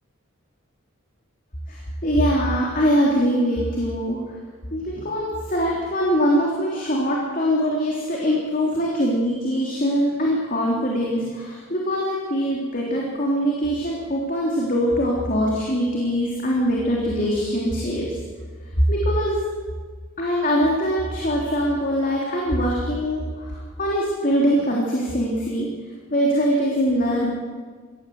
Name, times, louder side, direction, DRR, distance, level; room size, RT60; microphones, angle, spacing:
voice 1, 1.7-4.2 4.7-18.1 18.9-19.4 20.2-25.7 26.1-27.3, equal, 40° left, -3 dB, 3.4 m, -22 dB
24.0 x 17.0 x 7.9 m, 1.5 s
head